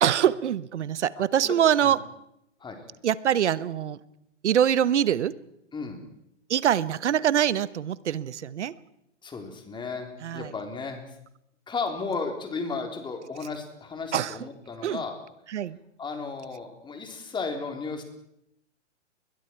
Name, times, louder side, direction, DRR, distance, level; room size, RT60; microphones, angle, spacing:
voice 1, 0.0-2.0 3.0-4.0 4.4-5.3 6.5-8.7 10.2-10.5 14.1-14.3 14.8-15.0 15.5-15.8, right 9 dB, 75° right, 18 dB, 1.1 m, -24 dB
voice 2, 1.4-2.0 2.6-2.8 5.7-6.0 9.2-11.0 11.7-15.1 16.0-18.0, left 4 dB, 15° left, 4 dB, 3.8 m, -34 dB
29.5 x 22.0 x 4.7 m, 0.80 s
hypercardioid pair, 125°, 35 cm